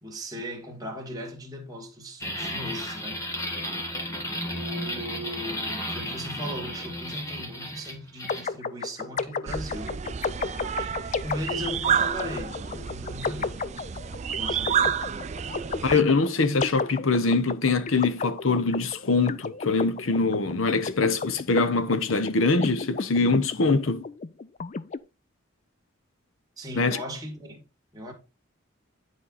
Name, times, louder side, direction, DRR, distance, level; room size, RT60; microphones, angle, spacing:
voice 1, 0.0-3.3 4.5-10.0 10.4-13.6 14.4-15.0 26.6-27.6 27.9-28.1, equal, 20° right, 2.2 m, -38 dB
sound 1, 2.2-8.5, left 1 dB, 15° left, 1.6 m, -33 dB
sound 2, 8.3-25.0, left 4 dB, 35° left, 0.4 m, -33 dB
sound 3, 9.5-16.0, right 8 dB, 35° right, 0.4 m, -30 dB
voice 2, 15.8-24.1 26.8-27.0, left 3 dB, 75° left, 0.9 m, -23 dB
10.0 x 4.6 x 4.0 m
head